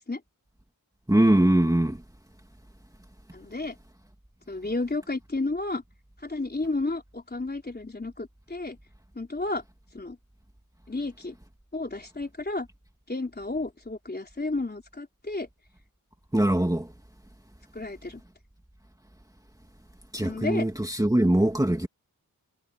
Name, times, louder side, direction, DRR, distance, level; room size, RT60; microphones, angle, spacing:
voice 1, 1.1-2.0 16.3-16.9 20.1-21.9, right 1 dB, 10° right, 2.2 m, -22 dB
voice 2, 3.3-3.8 4.5-5.8 6.2-8.8 9.2-9.6 9.9-10.2 10.9-11.4 11.7-12.7 13.1-15.5 17.7-18.2 20.2-20.7, left 2 dB, 25° left, 3.8 m, -32 dB
wide cardioid pair, 100°, 36 cm